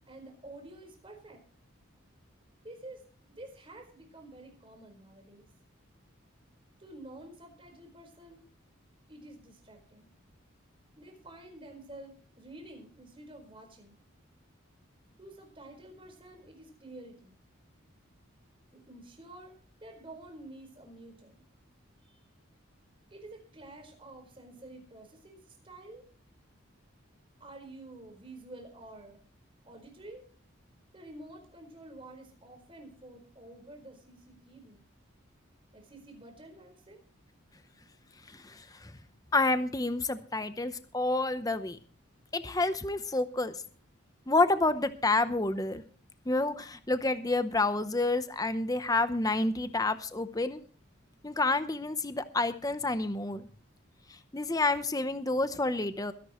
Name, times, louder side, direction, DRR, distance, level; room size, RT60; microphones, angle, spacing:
voice 1, 0.1-1.4 2.6-3.0 3.3-5.4 6.8-8.4 9.1-10.1 11.0-14.0 15.2-17.4 18.7-19.5 19.8-21.4 22.0-22.2 23.1-26.0 27.4-29.2 29.6-30.2 30.9-34.8 35.7-37.0, right 2 dB, 25° right, 4 dB, 4.5 m, -49 dB
voice 2, 38.3-38.9 39.3-41.8 42.3-43.6 44.3-45.8 46.3-50.6 51.2-53.5 54.3-56.1, left 2 dB, 15° left, 11 dB, 0.8 m, -29 dB
23.0 x 11.5 x 3.1 m, 0.42 s
head